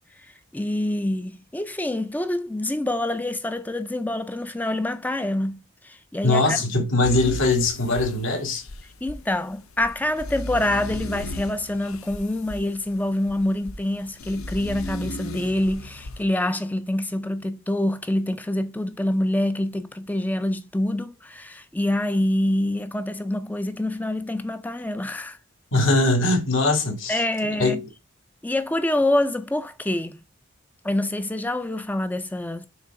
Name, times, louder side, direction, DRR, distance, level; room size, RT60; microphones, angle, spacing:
voice 1, 0.5-6.6 9.0-25.4 27.1-27.8 28.4-30.2 30.8-32.7, left 1 dB, 10° left, 0.4 m, -26 dB
voice 2, 6.2-8.6 25.7-27.9, left 2 dB, 70° left, 1.7 m, -21 dB
sound 1, 7.0-16.2, left 1 dB, 90° left, 0.7 m, -36 dB
6.6 x 3.4 x 4.6 m
head